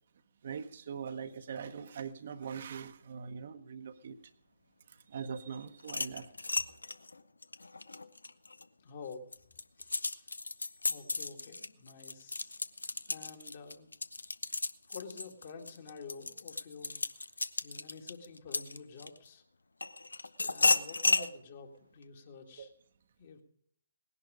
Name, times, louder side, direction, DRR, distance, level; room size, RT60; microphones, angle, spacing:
voice 1, 0.4-4.2 4.9-6.3 21.2-21.3 22.6-22.7, right 6 dB, 50° right, 8 dB, 0.9 m, -42 dB
sound 1, 5.8-8.6 9.1-19.3 19.8-21.3, left 3 dB, 75° left, 0.6 m, -34 dB
voice 2, 8.8-9.3 9.8-10.4 10.9-12.5 13.1-13.9 14.9-17.0 17.6-19.4 20.4-22.7 23.2-23.4, left 5 dB, 45° left, 3 dB, 2.1 m, -49 dB
18.5 x 11.0 x 5.0 m, 0.68 s
figure-of-eight pair, 140°, 0 cm